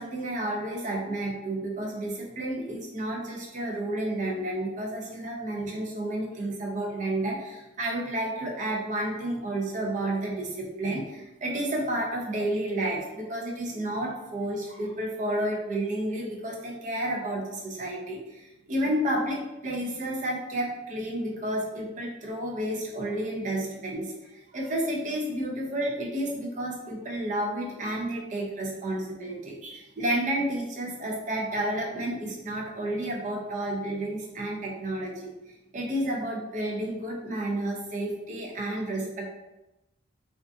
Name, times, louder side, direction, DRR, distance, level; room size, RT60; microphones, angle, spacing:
voice 1, 0.0-35.3 35.7-39.3, right 1 dB, 40° right, -1 dB, 0.4 m, -31 dB
2.4 x 2.2 x 2.5 m, 0.95 s
head